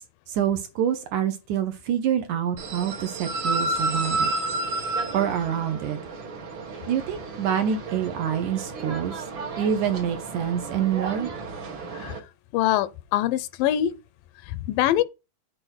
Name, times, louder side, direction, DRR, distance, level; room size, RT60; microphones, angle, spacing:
voice 1, 0.3-4.3 5.1-6.0 6.9-9.2 9.6-11.3, right 9 dB, 70° right, 2.1 m, -26 dB
sound 1, 2.6-12.2, right 2 dB, 55° right, 1.5 m, -31 dB
voice 2, 12.5-13.9 14.5-15.0, left 12 dB, 85° left, 2.2 m, -23 dB
7.9 x 4.2 x 6.3 m
omnidirectional pair, 4.1 m